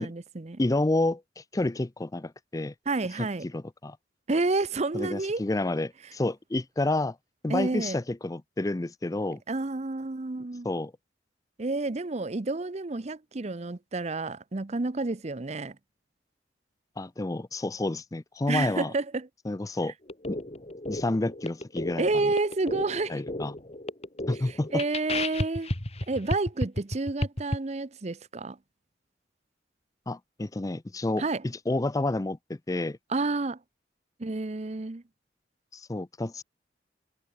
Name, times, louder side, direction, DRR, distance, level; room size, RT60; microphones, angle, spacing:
voice 1, 0.0-0.6 2.9-3.5 4.3-5.4 7.5-8.0 9.5-10.7 11.6-15.8 18.5-19.3 22.0-23.2 24.5-25.7 26.1-28.6 31.2-31.4 33.1-33.6 34.2-35.0, right 3 dB, 40° right, 0.7 m, -30 dB
voice 2, 0.6-2.7 3.5-4.0 4.9-7.2 7.4-9.4 10.6-10.9 17.0-18.9 19.5-19.9 20.3-20.4 20.9-22.3 23.1-23.5 24.3-24.8 25.1-25.2 30.1-33.0 35.7-36.4, left 2 dB, 20° left, 0.5 m, -29 dB
sound 1, 20.1-27.6, left 1 dB, 35° left, 2.0 m, -33 dB
head